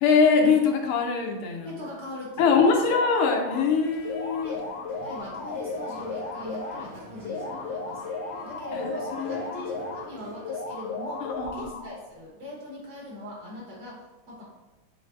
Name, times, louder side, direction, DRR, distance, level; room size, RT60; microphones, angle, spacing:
voice 1, 0.0-1.7 2.4-4.5 8.7-8.9 9.2-9.4 11.2-11.8, left 5 dB, 85° left, 3 dB, 1.5 m, -23 dB
voice 2, 1.6-2.9 4.4-4.7 5.0-8.0 8.4-14.4, left 1 dB, 50° right, -4 dB, 1.6 m, -41 dB
sound 1, 2.4-3.6 4.0-6.8 7.2-10.0 10.4-12.0, left 4 dB, 65° left, 1.2 m, -35 dB
sound 2, 3.6-12.2, right 1 dB, 85° right, 2.6 m, -46 dB
6.5 x 3.0 x 2.5 m, 1.2 s
omnidirectional pair, 2.4 m